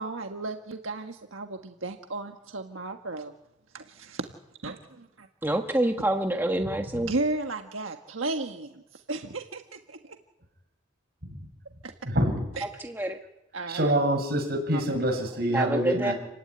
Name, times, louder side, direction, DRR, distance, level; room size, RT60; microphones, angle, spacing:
voice 1, 0.0-3.3 3.7-4.3 4.6-5.3 7.0-10.2 11.8-11.9 12.6-12.7 13.5-13.9 14.7-14.8, right 2 dB, 90° right, 5 dB, 1.5 m, -34 dB
voice 2, 5.4-7.1 12.6-13.2 15.5-16.1, right 1 dB, 10° right, 3 dB, 1.4 m, -27 dB
voice 3, 12.1-12.4 13.7-16.1, right 1 dB, 50° right, 3 dB, 7.7 m, -26 dB
29.5 x 16.0 x 9.8 m, 0.89 s
head